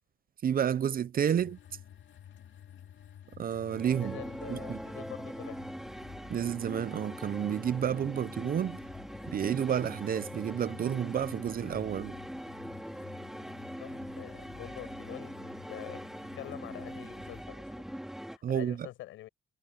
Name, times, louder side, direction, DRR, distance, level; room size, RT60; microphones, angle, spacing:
voice 1, 0.4-1.6 3.4-4.2 4.5-4.8 6.3-8.8 9.3-12.1 18.4-18.9, right 9 dB, 45° right, 0.6 m, -30 dB
sound 1, 1.4-17.4, left 10 dB, 70° left, 2.4 m, -52 dB
sound 2, 3.7-18.4, equal, ahead, 2.9 m, -42 dB
voice 2, 4.0-5.7 13.8-16.1 16.3-18.0 18.3-19.3, left 15 dB, 90° left, 7.4 m, -46 dB
cardioid pair, 90°, 20 cm